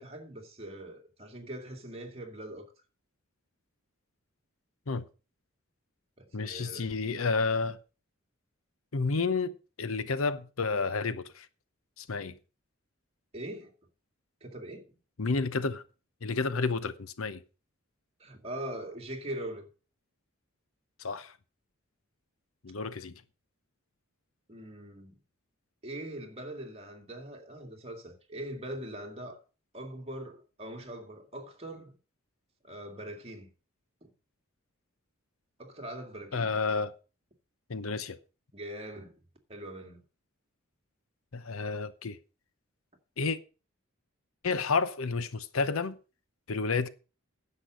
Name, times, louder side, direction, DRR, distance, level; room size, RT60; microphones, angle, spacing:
voice 1, 0.0-2.7 6.2-6.9 13.3-13.7 14.4-14.9 18.2-19.6 24.5-25.2 25.8-29.4 29.7-31.9 32.6-33.5 34.0-34.1 35.6-36.5 38.5-39.2 39.5-40.0, right 1 dB, 30° right, 2.3 m, -42 dB
voice 2, 6.3-7.8 8.9-11.5 12.0-12.3 15.2-15.8 16.2-17.4 21.0-21.3 22.6-23.1 36.3-36.9 37.7-38.2 41.3-42.2 43.2-43.4 44.4-46.0 46.5-46.9, left 4 dB, 75° left, 0.8 m, -30 dB
10.0 x 7.4 x 6.3 m
head